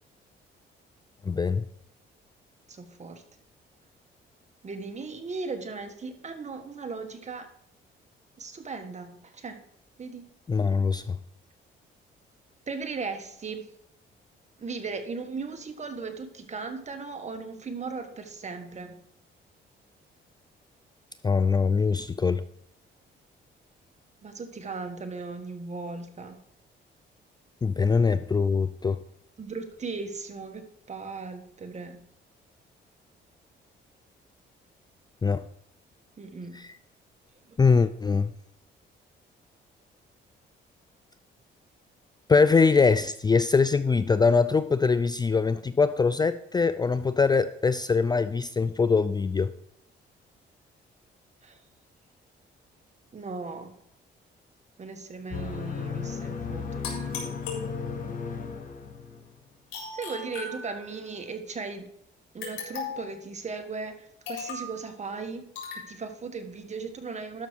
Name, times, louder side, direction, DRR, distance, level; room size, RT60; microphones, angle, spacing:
voice 1, 1.3-1.6 10.5-11.2 21.2-22.4 27.6-29.0 35.2-35.4 36.6-36.7 37.6-38.3 42.3-49.5, left 4 dB, 20° left, 13 dB, 0.4 m, -23 dB
voice 2, 2.7-3.2 4.6-7.5 8.4-9.6 10.0-10.2 12.7-13.7 14.6-18.9 24.2-26.4 29.4-32.0 36.2-36.6 37.5-37.6 51.4-51.6 53.1-53.8 54.8-57.1 59.9-61.9 62.3-65.5 65.7-67.5, right 4 dB, 35° right, 7 dB, 1.6 m, -37 dB
sound 1, 55.3-59.4, left 5 dB, 40° left, 1.5 m, -35 dB
sound 2, 56.8-58.2 59.7-61.1 62.4-63.2 64.3-64.8 65.6-65.9, left 4 dB, 85° left, 4.0 m, -38 dB
12.5 x 6.2 x 4.5 m, 0.69 s
cardioid pair, 90°, 20 cm